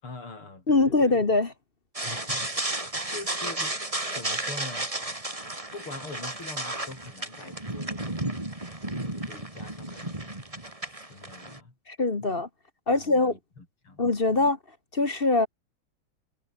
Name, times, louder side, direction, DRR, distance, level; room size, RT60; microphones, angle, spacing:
voice 1, 0.0-1.2 2.0-3.8 4.1-4.9 5.7-8.4 9.0-10.5 10.9-11.7 12.2-12.4 12.9-14.0 14.3-14.5, left 3 dB, 80° left, 6.5 m, -44 dB
voice 2, 0.7-1.5 11.9-12.5 12.9-13.3 14.0-14.6 14.9-15.5, left 3 dB, 30° left, 1.6 m, -23 dB
sound 1, 2.0-11.6, right 1 dB, 15° right, 3.2 m, -33 dB
omnidirectional pair, 2.4 m